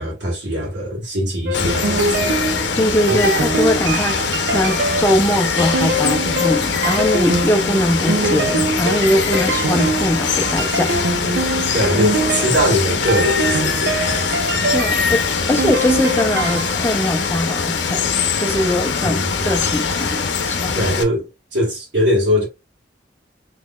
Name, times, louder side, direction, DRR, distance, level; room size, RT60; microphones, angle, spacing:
voice 1, 0.0-2.4 3.1-3.2 11.7-14.6 19.0-19.5 20.7-22.5, equal, 90° right, 1.5 m, -22 dB
Water, 1.5-21.0, left 5 dB, 85° left, 0.7 m, -22 dB
sound 1, 1.5-16.7, right 2 dB, 70° right, 0.5 m, -23 dB
voice 2, 2.8-11.1 11.4-11.5 11.9-12.1 14.7-18.0 18.4-20.7, left 1 dB, 15° left, 0.5 m, -21 dB
3.8 x 3.0 x 2.3 m
head